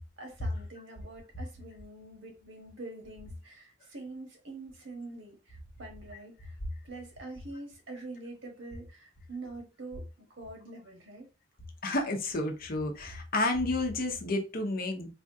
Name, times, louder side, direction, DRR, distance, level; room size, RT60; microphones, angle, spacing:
voice 1, 0.2-6.6 6.8-11.3, right 2 dB, 75° right, 1.2 m, -45 dB
voice 2, 11.8-15.1, left 2 dB, 50° left, 0.8 m, -30 dB
4.2 x 2.4 x 2.7 m
head